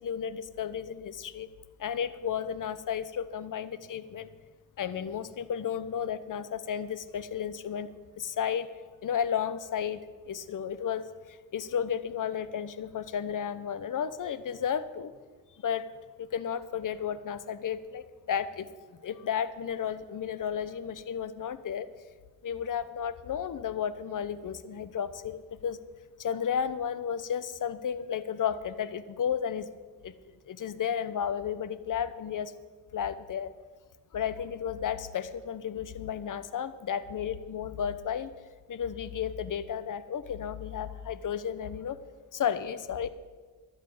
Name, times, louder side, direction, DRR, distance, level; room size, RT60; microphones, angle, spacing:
voice 1, 0.0-1.5 1.8-4.3 4.8-7.9 8.2-8.7 9.0-15.1 15.6-15.9 16.2-18.7 19.0-21.9 22.4-25.8 26.2-29.7 30.0-30.1 30.4-32.5 32.9-33.5 34.1-38.3 38.7-42.0 42.3-43.1, left 8 dB, 55° left, 15 dB, 0.9 m, -33 dB
12.0 x 7.5 x 9.2 m, 1.4 s
supercardioid pair, 55°, 38 cm